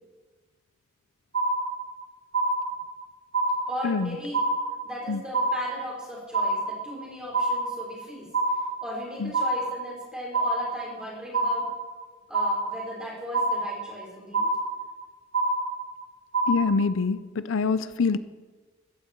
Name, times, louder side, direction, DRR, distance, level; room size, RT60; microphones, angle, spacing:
sound 1, 1.3-2.0 2.3-3.0 3.3-4.0 4.3-5.0 5.3-6.0 6.3-7.0 7.3-8.0 8.3-9.0 9.3-10.0 10.3-11.0 11.3-12.0 12.3-13.0 13.3-14.0 14.3-15.0 15.3-16.0 16.3-16.6, right 2 dB, 80° right, 3.2 m, -26 dB
voice 1, 3.7-4.4 4.8-8.3 8.8-11.6 12.3-14.5, left 1 dB, 5° right, -4 dB, 4.8 m, -37 dB
voice 2, 16.5-18.2, left 4 dB, 80° left, 14 dB, 0.5 m, -25 dB
15.5 x 14.5 x 4.6 m, 1.4 s
head